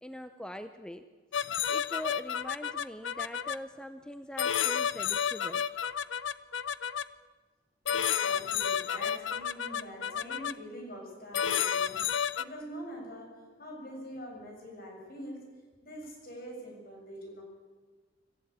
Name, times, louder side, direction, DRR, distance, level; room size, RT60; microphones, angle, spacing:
voice 1, 0.0-1.0 1.7-5.6, equal, 5° left, 9 dB, 0.7 m, -42 dB
sound 1, 1.3-3.6 4.4-7.0 7.9-10.5 11.3-12.4, left 8 dB, 85° left, 0.7 m, -31 dB
voice 2, 7.9-15.5 15.8-17.4, equal, 55° left, 1 dB, 7.2 m, -45 dB
26.0 x 15.0 x 8.8 m, 1.4 s
head